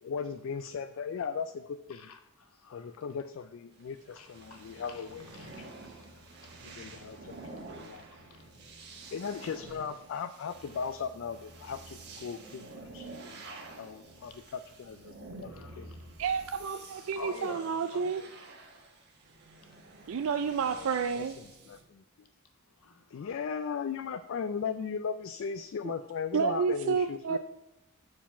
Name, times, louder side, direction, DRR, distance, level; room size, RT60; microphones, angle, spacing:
voice 1, 0.0-2.0 2.7-5.3 5.6-5.7 6.6-8.0 9.1-15.1 15.4-15.9 20.7-21.3 21.7-22.0 23.1-27.4, left 6 dB, 60° left, 0.3 m, -37 dB
voice 2, 1.9-3.2 4.1-7.6 8.0-8.5 8.8-9.1 13.3-14.0 14.3-14.4 15.5-16.0 16.6-18.3 19.7-20.3 22.8-23.5, left 3 dB, 85° left, 1.0 m, -50 dB
sound 1, 3.7-21.8, right 3 dB, 50° right, 1.2 m, -49 dB
voice 3, 16.2-18.2 20.1-21.4 25.8-25.9 26.3-27.4, right 6 dB, 65° right, 0.4 m, -30 dB
7.2 x 4.7 x 5.7 m
head